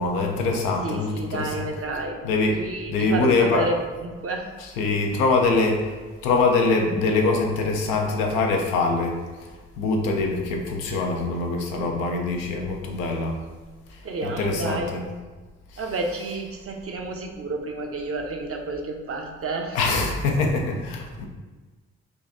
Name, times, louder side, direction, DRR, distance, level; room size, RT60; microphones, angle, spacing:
voice 1, 0.0-1.5 2.2-3.7 4.8-5.9 6.2-9.5 9.8-13.4 13.9-15.0 19.7-21.3, left 3 dB, 85° left, 1 dB, 0.5 m, -23 dB
voice 2, 0.8-2.2 2.6-4.5 14.0-14.9 15.8-19.8, right 2 dB, 40° right, 2 dB, 0.6 m, -30 dB
3.7 x 2.3 x 2.6 m, 1.3 s
hypercardioid pair, 45°, 34 cm